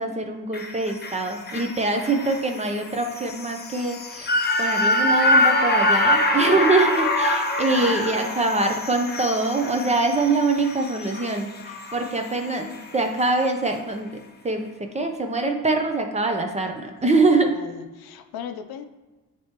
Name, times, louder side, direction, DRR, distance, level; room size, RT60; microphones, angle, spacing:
voice 1, 0.0-14.2 14.4-14.7 14.9-17.5, right 3 dB, 20° right, 4 dB, 0.5 m, -24 dB
sound 1, 0.5-12.9 13.2-13.3, left 1 dB, 25° left, 0.6 m, -25 dB
voice 2, 7.7-8.4 8.7-8.8 17.0-18.8, left 8 dB, 75° left, 7 dB, 0.6 m, -38 dB
9.3 x 3.5 x 2.9 m, 1.2 s
cardioid pair, 130°, 37 cm